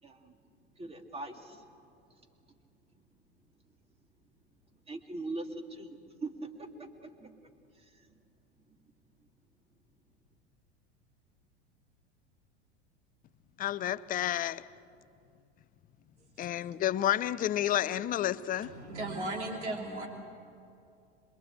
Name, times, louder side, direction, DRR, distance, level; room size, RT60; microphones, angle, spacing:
voice 1, 0.0-0.4 0.8-1.7 2.1-2.2 4.9-8.1, right 2 dB, 15° right, 2.4 m, -42 dB
voice 2, 13.6-14.7 16.4-18.7, left 12 dB, 25° left, 0.6 m, -30 dB
voice 3, 18.6-20.1, right 2 dB, 80° right, 3.2 m, -36 dB
26.5 x 22.0 x 7.9 m
figure-of-eight pair, 80°, 34 cm